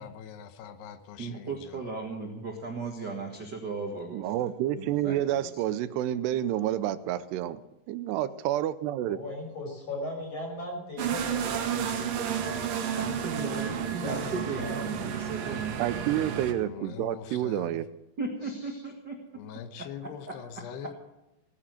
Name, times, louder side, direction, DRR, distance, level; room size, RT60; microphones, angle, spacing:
voice 1, 0.0-1.8 16.5-17.8 19.3-20.9, left 8 dB, 80° left, 10 dB, 3.0 m, -43 dB
voice 2, 1.2-4.5 4.8-5.6 12.9-16.2 18.2-19.2 19.8-19.9 20.3-20.9, right 3 dB, 45° right, 2 dB, 1.4 m, -37 dB
voice 3, 4.1-7.6 7.9-9.2 15.8-17.9, right 12 dB, 85° right, 14 dB, 2.8 m, -29 dB
voice 4, 9.1-12.6 14.0-14.9 18.4-18.8, left 2 dB, 35° left, 0 dB, 6.5 m, -39 dB
sound 1, 11.0-16.5, right 8 dB, 60° right, 2.8 m, -31 dB
18.0 x 10.0 x 7.6 m, 0.93 s
omnidirectional pair, 4.8 m